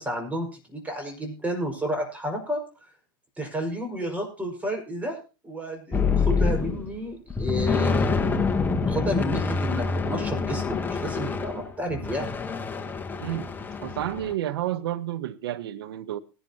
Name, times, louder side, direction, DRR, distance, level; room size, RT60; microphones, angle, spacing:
voice 1, 0.0-2.6 3.4-5.2 5.4-12.4, equal, 10° right, 5.6 m, -31 dB
sound 1, 5.9-7.0 7.3-14.3, left 4 dB, 15° left, 1.2 m, -26 dB
voice 2, 13.8-16.2, right 12 dB, 80° right, 1.1 m, -30 dB
20.0 x 11.5 x 2.9 m
hypercardioid pair, 110°, 12 cm